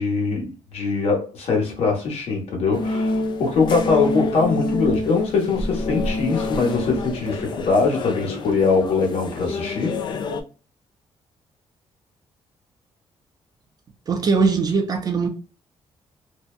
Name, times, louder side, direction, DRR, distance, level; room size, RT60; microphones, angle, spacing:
voice 1, 0.0-10.0, left 4 dB, 70° left, 1.2 m, -22 dB
sound 1, 2.7-10.4, left 2 dB, 45° left, 0.4 m, -27 dB
voice 2, 14.1-15.3, right 4 dB, 35° right, 0.5 m, -20 dB
2.7 x 2.1 x 2.4 m
cardioid pair, 135°, 11 cm